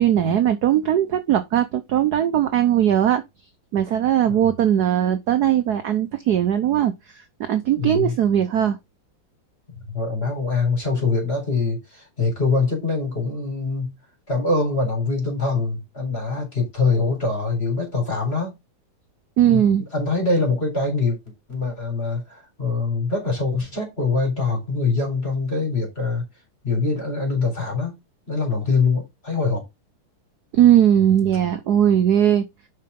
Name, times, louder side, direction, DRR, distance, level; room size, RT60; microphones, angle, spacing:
voice 1, 0.0-3.2 3.7-8.8 19.4-19.9 30.5-32.4, right 10 dB, 65° right, 1.0 m, -19 dB
voice 2, 4.2-4.6 7.8-8.2 9.8-13.9 14.3-18.6 19.4-21.2 21.5-26.2 26.6-28.0 28.3-29.6, left 3 dB, 25° left, 4.3 m, -24 dB
7.6 x 5.8 x 3.7 m
omnidirectional pair, 2.4 m